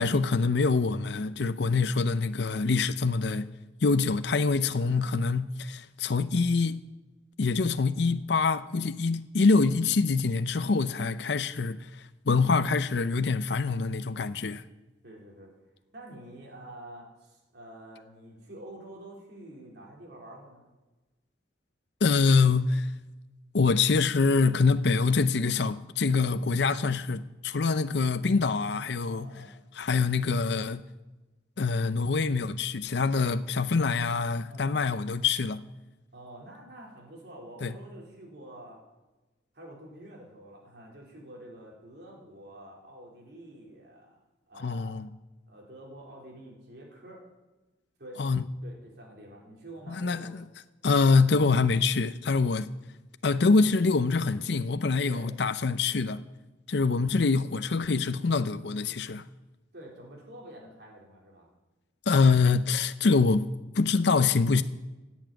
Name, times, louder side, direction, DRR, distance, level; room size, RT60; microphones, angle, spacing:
voice 1, 0.0-3.5 3.8-6.8 7.4-14.6 22.0-22.9 23.5-29.4 29.7-30.8 31.6-35.6 37.6-37.7 44.6-45.1 48.2-48.4 49.9-50.4 50.8-52.7 53.2-56.2 56.7-59.3 62.1-63.5 63.7-64.6, left 4 dB, 65° left, 0.6 m, -25 dB
voice 2, 4.8-5.2 10.6-11.0 15.0-15.5 15.9-20.6 29.0-29.5 34.5-34.9 36.1-38.8 39.5-44.2 44.5-44.9 45.5-47.2 48.0-48.2 48.6-50.3 55.0-55.3 59.7-61.5, right 1 dB, 60° right, 3.7 m, -47 dB
16.5 x 7.3 x 9.0 m
head